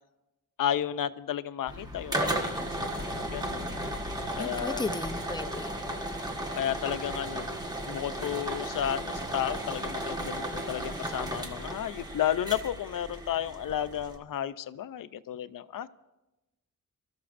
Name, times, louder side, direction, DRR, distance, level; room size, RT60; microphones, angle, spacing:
voice 1, 0.6-3.8 4.4-4.9 6.5-7.5 7.9-15.9, left 10 dB, 80° left, 14 dB, 0.6 m, -33 dB
sound 1, 1.7-14.2, right 1 dB, 10° right, 1.3 m, -35 dB
voice 2, 4.4-5.8, left 3 dB, 15° left, 9 dB, 0.5 m, -35 dB
29.0 x 13.5 x 2.6 m, 1.0 s
wide cardioid pair, 155°, 32 cm